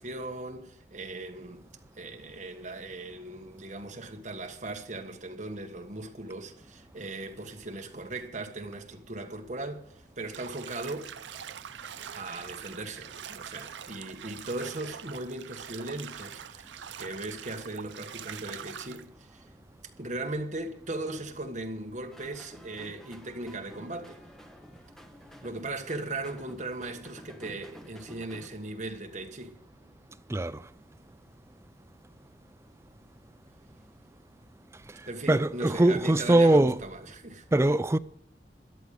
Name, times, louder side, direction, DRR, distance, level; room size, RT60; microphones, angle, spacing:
voice 1, 0.0-1.7 2.0-11.1 12.2-19.4 20.0-24.2 25.4-29.6 35.1-37.4, right 2 dB, 40° right, 1.4 m, -38 dB
Bathtub (filling or washing), 10.3-19.0, right 8 dB, 90° right, 0.6 m, -44 dB
sound 1, 22.1-28.5, equal, ahead, 1.0 m, -51 dB
voice 2, 30.3-30.7 34.9-36.9 37.5-38.0, right 1 dB, 15° right, 0.4 m, -23 dB
13.5 x 10.5 x 5.0 m
head